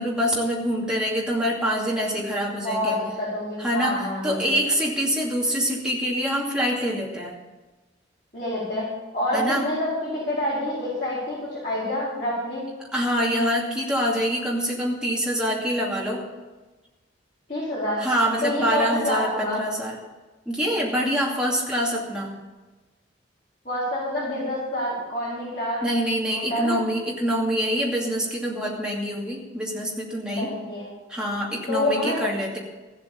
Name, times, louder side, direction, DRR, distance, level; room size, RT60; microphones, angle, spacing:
voice 1, 0.0-3.0 3.6-7.4 9.3-9.7 12.9-16.2 18.0-20.0 20.5-22.3 25.8-30.5 31.1-32.6, equal, 5° right, -4 dB, 2.5 m, -25 dB
voice 2, 2.6-4.6 8.3-8.9 9.1-12.6 17.5-18.1 18.4-19.6 23.6-25.8 26.3-26.8 30.3-30.9 31.7-32.2, left 1 dB, 40° left, -10 dB, 4.7 m, -27 dB
14.5 x 8.2 x 7.1 m, 1.2 s
head